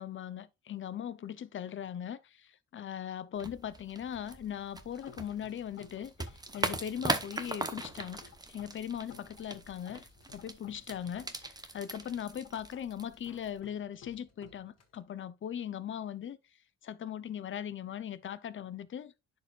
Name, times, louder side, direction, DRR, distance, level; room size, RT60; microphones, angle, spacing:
voice 1, 0.0-8.2 8.5-16.4 16.8-19.1, left 9 dB, 45° left, 0.6 m, -39 dB
sound 1, 3.4-13.6, right 2 dB, 15° right, 0.9 m, -40 dB
sound 2, 4.9-15.0, left 7 dB, 60° left, 1.8 m, -57 dB
10.5 x 4.8 x 2.4 m
cardioid pair, 90°, 29 cm